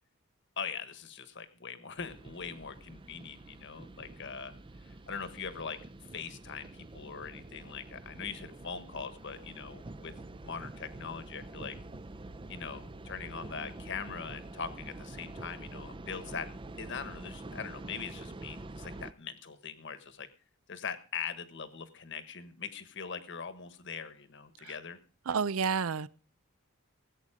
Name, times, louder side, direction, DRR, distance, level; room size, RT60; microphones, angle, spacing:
voice 1, 0.6-4.5 4.8-5.8 6.1-10.1 10.4-11.8 12.5-16.5 16.8-20.3 20.7-25.0, left 6 dB, 60° left, 11 dB, 1.4 m, -41 dB
sound 1, 2.0-19.1, right 2 dB, 25° right, 0.5 m, -47 dB
voice 2, 25.3-26.1, right 5 dB, 80° right, 18 dB, 0.6 m, -29 dB
19.0 x 8.4 x 4.9 m, 0.38 s
head